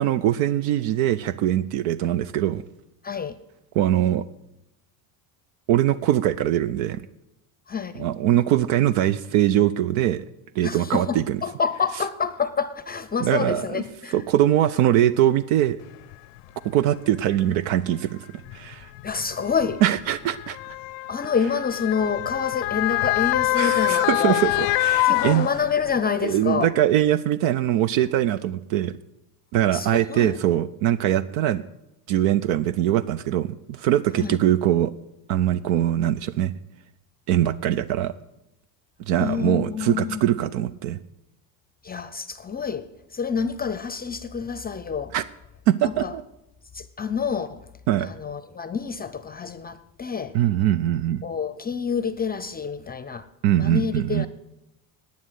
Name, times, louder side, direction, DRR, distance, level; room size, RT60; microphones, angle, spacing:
voice 1, 0.0-2.6 3.7-4.2 5.7-7.1 8.0-10.3 10.6-11.4 13.2-13.8 14.1-15.8 16.6-18.3 18.5-18.9 19.8-20.6 23.0-23.1 23.6-25.5 26.2-28.9 29.5-31.6 32.1-34.9 35.3-36.5 37.3-38.1 39.1-41.0 45.1-45.2 45.7-46.2 47.9-48.1 50.3-51.2 53.4-54.3, right 12 dB, 65° right, 0.6 m, -22 dB
voice 2, 3.0-3.4 7.7-8.1 10.6-14.2 19.0-19.8 21.1-24.4 25.0-26.7 29.7-30.4 34.2-34.4 39.1-40.2 41.8-45.1 45.8-46.1 46.7-47.6 48.0-50.4 51.2-53.3 53.6-54.3, left 6 dB, 20° left, 0.6 m, -28 dB
Motor vehicle (road) / Siren, 16.1-16.2 17.2-17.4 18.5-26.1 26.5-26.6, left 20 dB, 75° left, 0.6 m, -25 dB
11.5 x 8.7 x 8.2 m
supercardioid pair, 95°, 46 cm